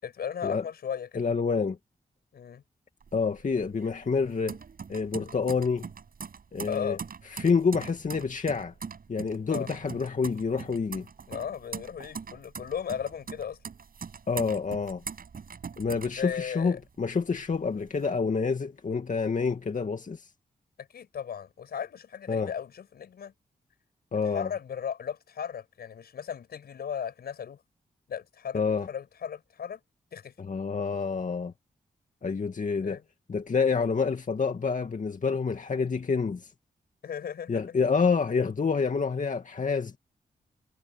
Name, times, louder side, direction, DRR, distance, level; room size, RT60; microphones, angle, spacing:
voice 1, 0.0-1.3 2.3-2.6 6.7-7.0 9.5-9.7 11.3-13.6 16.2-16.8 20.8-23.3 24.3-27.6 28.1-29.8 30.1-30.3 32.8-33.0 37.0-37.6, left 8 dB, 85° left, 5.8 m, -36 dB
voice 2, 1.1-1.8 3.1-4.6 4.9-5.9 6.5-7.0 7.3-8.7 9.1-11.1 14.3-15.0 15.8-20.3 22.3-22.5 24.1-24.5 28.5-28.9 30.4-31.5 32.2-33.0 33.3-36.5 37.5-40.0, left 5 dB, 55° left, 2.3 m, -28 dB
sound 1, 3.0-16.8 17.2-18.1, right 6 dB, 65° right, 6.9 m, -42 dB
cardioid pair, 50°, 16 cm